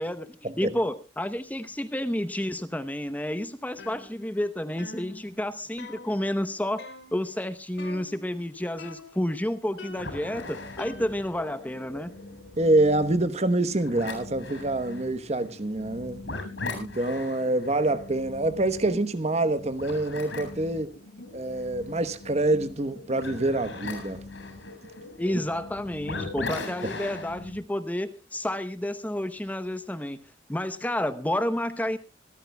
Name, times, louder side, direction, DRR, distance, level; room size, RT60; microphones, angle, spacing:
voice 1, 0.6-12.1 25.2-30.2 30.5-32.0, left 1 dB, 10° left, 0.8 m, -30 dB
sound 1, 3.8-4.5 4.8-6.5 6.8-7.3 7.8-8.4 8.8-9.4 9.8-11.5, left 3 dB, 65° left, 2.7 m, -46 dB
sound 2, 9.9-27.6, left 3 dB, 80° left, 7.4 m, -40 dB
voice 2, 12.6-16.2 16.7-20.9 21.3-24.2 26.8-26.9, right 2 dB, 35° right, 1.0 m, -26 dB
25.5 x 13.5 x 2.3 m
head